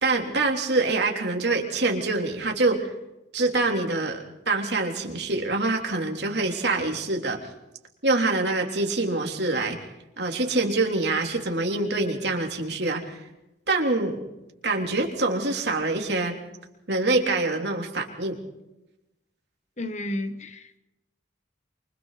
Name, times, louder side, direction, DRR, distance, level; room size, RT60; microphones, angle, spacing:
voice 1, 0.0-2.9 3.3-7.4 8.0-9.8 10.2-13.2 13.7-14.3 14.6-16.4 16.9-18.4, right 2 dB, 60° right, 3.6 m, -25 dB
voice 2, 19.8-20.8, left 1 dB, 35° left, 1.3 m, -32 dB
28.5 x 25.5 x 4.2 m
head